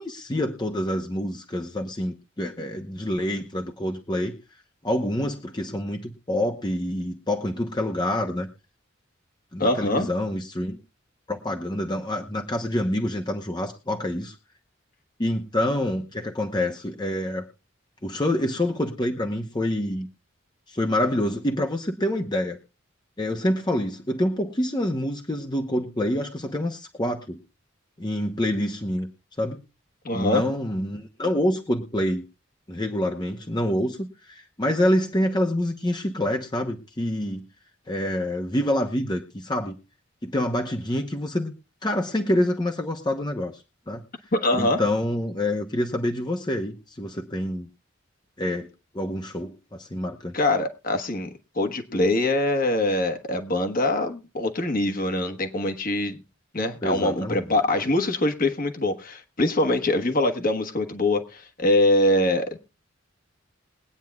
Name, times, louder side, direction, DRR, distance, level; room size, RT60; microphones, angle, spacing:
voice 1, 0.0-4.4 4.8-8.5 9.5-10.8 11.3-14.4 15.2-17.5 18.0-20.1 20.7-22.6 23.2-27.4 28.0-29.1 29.4-29.6 30.1-32.2 32.7-37.5 37.9-39.8 40.2-41.5 41.8-43.6 43.9-44.0 44.5-47.7 48.4-48.7 48.9-50.4 56.8-57.5, left 1 dB, 20° left, 0.9 m, -27 dB
voice 2, 9.6-10.1 30.0-30.4 44.3-44.8 50.3-51.3 51.5-56.2 56.5-62.6, left 1 dB, 45° left, 1.4 m, -23 dB
22.0 x 9.2 x 2.3 m
head